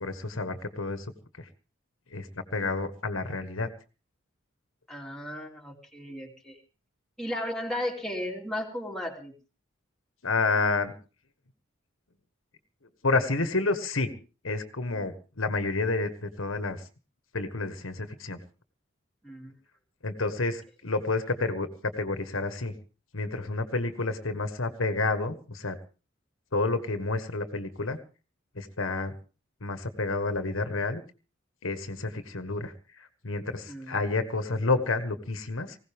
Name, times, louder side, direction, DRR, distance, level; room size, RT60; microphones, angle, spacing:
voice 1, 0.0-1.1 1.4-1.5 2.1-3.7 10.2-10.9 13.0-14.1 14.4-16.8 17.3-18.4 20.0-21.7 22.0-22.7 23.1-25.8 26.5-28.0 28.5-29.1 29.6-31.0 31.6-35.8, left 3 dB, 75° left, 9 dB, 1.5 m, -29 dB
voice 2, 4.9-6.6 7.2-9.3 19.2-19.5 33.7-34.0, left 1 dB, 5° left, 0 dB, 2.9 m, -35 dB
20.0 x 17.0 x 3.5 m, 0.35 s
head